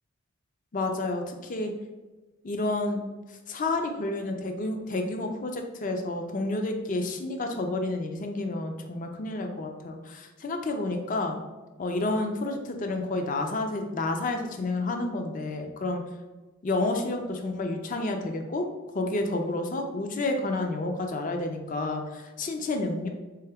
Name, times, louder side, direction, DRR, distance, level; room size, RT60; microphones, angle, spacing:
voice 1, 0.7-1.7 2.4-3.0 3.3-11.4 11.8-16.0 16.6-18.7 18.9-23.1, left 2 dB, 40° left, 4 dB, 0.4 m, -30 dB
3.6 x 3.4 x 3.4 m, 1.2 s
head